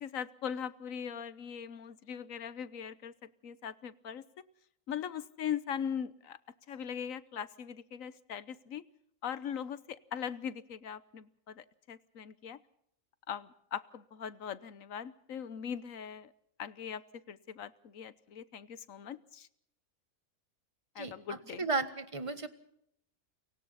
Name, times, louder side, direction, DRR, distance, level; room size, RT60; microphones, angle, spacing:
voice 1, 0.0-4.2 4.9-6.4 6.7-8.8 9.2-12.6 13.3-16.3 16.6-17.0 17.3-19.5 20.9-21.7, left 8 dB, 70° left, 15 dB, 1.4 m, -40 dB
voice 2, 21.0-22.5, right 3 dB, 25° right, 10 dB, 1.6 m, -35 dB
28.5 x 24.0 x 4.2 m, 0.71 s
omnidirectional pair, 1.5 m